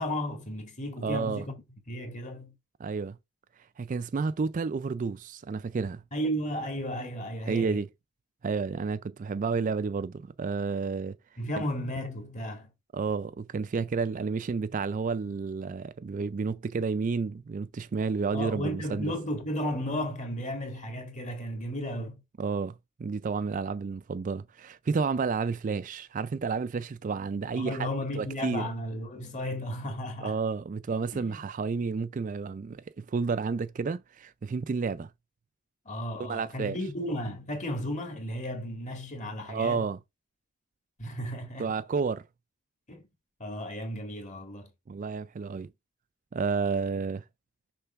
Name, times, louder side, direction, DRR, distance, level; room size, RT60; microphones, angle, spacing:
voice 1, 0.0-1.6 1.9-2.5 6.1-7.8 11.4-12.7 18.3-22.2 27.5-30.4 31.1-31.4 35.9-39.9 41.0-41.7 42.9-43.1 43.4-44.7, equal, 35° left, 2.0 m, -34 dB
voice 2, 1.0-1.4 2.8-3.2 3.8-6.0 7.4-7.9 8.4-11.2 12.9-19.1 22.4-28.6 30.2-35.1 36.2-36.8 39.5-40.0 41.6-42.2 44.9-45.7 46.3-47.2, right 5 dB, 35° right, 0.3 m, -31 dB
6.6 x 3.3 x 5.7 m
head